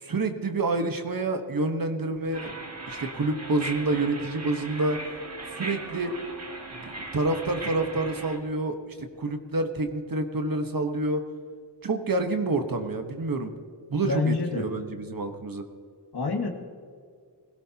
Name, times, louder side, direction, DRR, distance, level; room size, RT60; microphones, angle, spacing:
voice 1, 0.0-2.5 2.9-5.0 5.5-6.1 6.7-11.2 11.8-13.5 13.9-15.6, right 2 dB, 50° right, 6 dB, 1.3 m, -28 dB
sound 1, 2.3-8.4, right 2 dB, 35° right, 2.0 m, -38 dB
voice 2, 14.0-14.7 16.1-16.5, left 4 dB, 60° left, 2 dB, 1.9 m, -27 dB
21.0 x 16.5 x 2.9 m, 2.1 s
wide cardioid pair, 90°, 43 cm